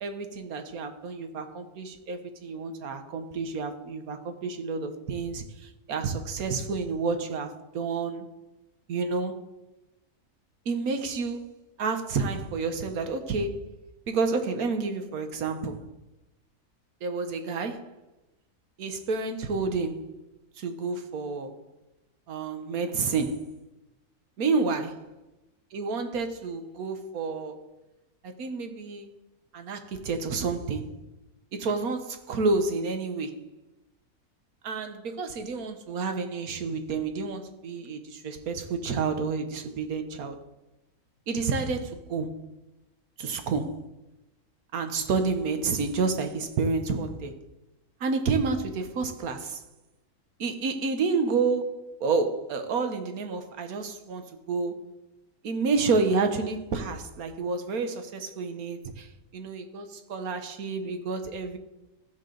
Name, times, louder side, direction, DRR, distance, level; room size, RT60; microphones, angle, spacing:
voice 1, 0.0-8.3 8.9-9.4 10.6-13.6 14.1-15.8 17.0-17.9 18.8-20.1 20.6-21.5 22.3-23.5 24.4-24.9 25.7-27.7 28.2-29.1 29.5-31.0 31.5-33.4 34.6-40.4 41.3-42.4 43.2-43.8 44.7-47.3 48.0-49.6 50.4-54.8 55.4-59.1 59.3-61.6, right 4 dB, 70° right, 1.4 m, -29 dB
15.0 x 6.6 x 3.9 m
omnidirectional pair, 1.6 m